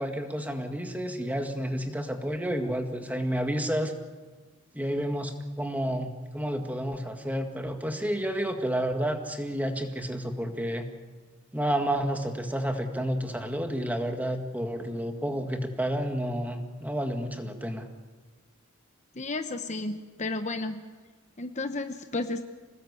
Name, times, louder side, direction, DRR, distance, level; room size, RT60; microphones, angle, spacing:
voice 1, 0.0-3.9 4.7-10.9 11.5-17.9, equal, 5° right, 5 dB, 1.8 m, -30 dB
voice 2, 19.1-20.8 21.4-22.4, left 2 dB, 30° left, 8 dB, 0.9 m, -32 dB
27.0 x 19.0 x 8.3 m, 1.4 s
head